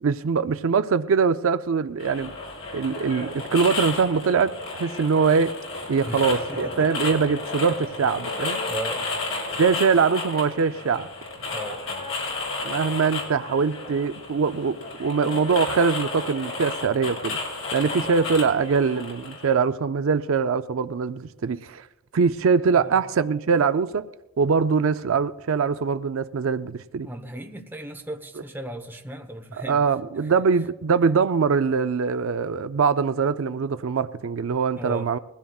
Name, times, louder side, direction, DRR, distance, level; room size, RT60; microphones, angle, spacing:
voice 1, 0.0-2.3 2.7-5.5 5.9-8.6 9.6-11.1 12.6-17.4 17.7-21.9 22.1-24.1 24.4-27.1 29.7-35.2, right 5 dB, 65° right, 0.4 m, -23 dB
sound 1, 2.0-19.5, left 3 dB, 65° left, 6.0 m, -32 dB
voice 2, 6.0-7.1 8.7-9.1 11.4-12.1 22.7-23.0 27.0-29.9 30.2-30.3 34.8-35.1, right 1 dB, 10° right, 0.9 m, -37 dB
21.5 x 16.0 x 2.4 m
head